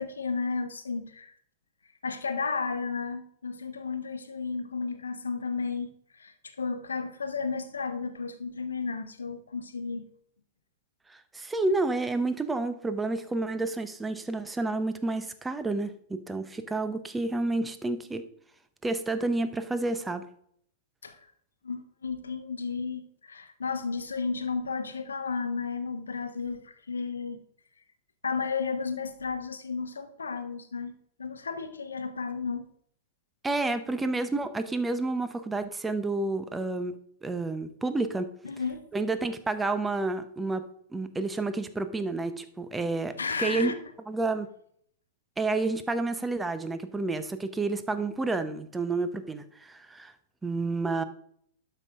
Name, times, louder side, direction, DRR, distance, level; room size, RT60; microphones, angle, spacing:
voice 1, 0.0-1.3 2.0-10.1 21.0-21.3 21.6-27.4 28.2-32.7 38.4-38.8 43.2-43.7, left 5 dB, 80° left, 1.0 m, -33 dB
voice 2, 11.1-18.2 18.8-20.2 33.4-36.9 37.2-38.3 38.9-40.6 40.9-43.7 44.1-44.5 45.4-50.1 50.4-51.0, right 3 dB, 10° right, 0.8 m, -30 dB
12.0 x 5.6 x 3.7 m
hypercardioid pair, 105°, 0 cm